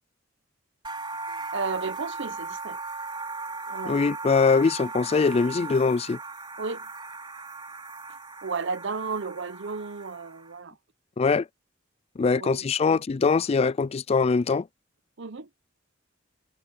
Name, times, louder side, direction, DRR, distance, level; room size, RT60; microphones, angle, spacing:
sound 1, 0.8-10.6, right 3 dB, 25° right, 3.5 m, -37 dB
voice 1, 1.5-2.8 3.7-4.0 6.6-6.9 8.4-10.8 12.4-13.0 15.2-15.5, right 4 dB, 65° right, 0.9 m, -33 dB
voice 2, 3.9-6.2 11.2-11.5 12.2-14.7, left 4 dB, 30° left, 0.3 m, -22 dB
head